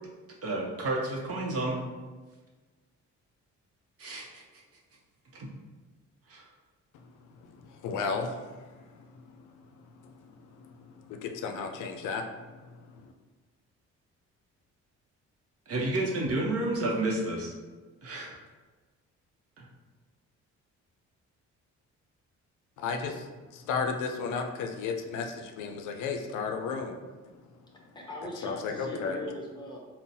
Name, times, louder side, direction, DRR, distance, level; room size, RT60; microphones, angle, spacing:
voice 1, 0.4-1.8 4.0-4.4 5.3-5.5 6.3-6.4 15.7-17.5 18.0-18.3 19.6-19.7, right 2 dB, 50° right, -1 dB, 0.8 m, -30 dB
voice 2, 7.6-8.7 10.0-10.1 10.6-10.7 11.0-12.2 12.9-13.1 22.8-27.0 28.4-29.2, left 5 dB, 80° left, 4 dB, 0.5 m, -33 dB
voice 3, 27.7-29.8, left 2 dB, 15° left, -1 dB, 0.7 m, -40 dB
3.8 x 2.1 x 2.6 m, 1.3 s
cardioid pair, 90°, 30 cm